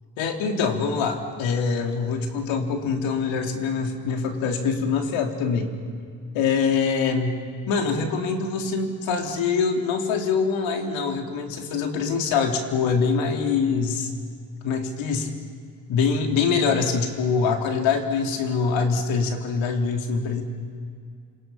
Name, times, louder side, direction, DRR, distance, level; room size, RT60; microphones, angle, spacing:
voice 1, 0.2-5.7 6.3-14.1 14.6-15.3 15.9-20.4, left 5 dB, 80° left, 3 dB, 3.4 m, -24 dB
29.5 x 27.0 x 5.7 m, 2.3 s
hypercardioid pair, 55°, 46 cm